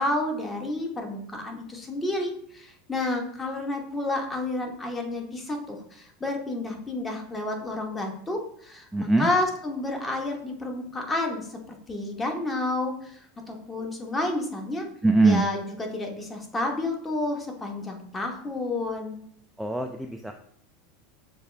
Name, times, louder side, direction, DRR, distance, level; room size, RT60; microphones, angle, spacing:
voice 1, 0.0-14.9 15.2-19.2, left 2 dB, 15° left, 2 dB, 1.0 m, -30 dB
voice 2, 8.9-9.3 15.0-15.5 19.6-20.3, right 2 dB, 5° right, 4 dB, 0.3 m, -22 dB
6.5 x 2.4 x 3.3 m, 0.65 s
supercardioid pair, 115°, 0 cm